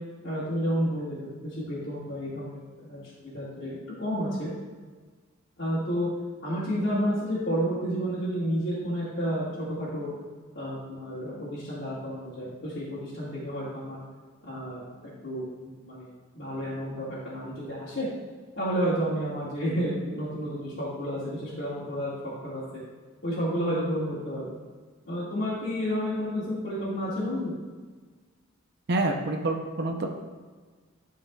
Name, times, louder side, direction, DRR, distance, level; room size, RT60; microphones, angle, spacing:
voice 1, 0.2-1.2 1.4-4.5 5.6-6.1 6.4-10.1 10.6-14.0 14.4-16.1 16.3-18.1 18.6-22.6 23.2-24.6 25.1-27.5, equal, 55° left, -11 dB, 1.9 m, -31 dB
voice 2, 28.9-30.1, right 2 dB, 50° right, 2 dB, 0.7 m, -27 dB
12.0 x 4.7 x 2.3 m, 1.4 s
head